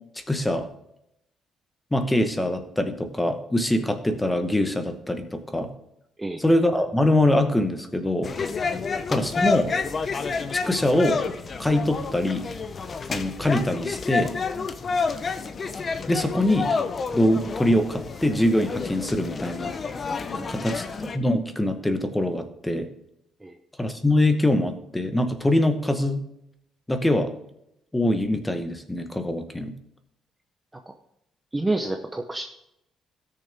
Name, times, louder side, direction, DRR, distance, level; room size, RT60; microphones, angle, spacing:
voice 1, 0.3-0.7 1.9-5.7 6.4-8.3 9.1-9.7 10.5-11.2 11.6-12.5 13.1-14.3 16.1-16.7 17.1-19.7 20.5-22.9 23.8-26.2 26.9-27.3 27.9-29.7, left 1 dB, 5° left, 7 dB, 0.9 m, -23 dB
sound 1, 8.2-21.2, left 4 dB, 30° left, 0.7 m, -29 dB
voice 2, 20.4-21.0 23.4-23.6 30.7-30.9 31.5-32.4, right 2 dB, 10° right, 5 dB, 0.6 m, -30 dB
17.0 x 6.7 x 3.4 m, 0.81 s
cardioid pair, 160°, 0 cm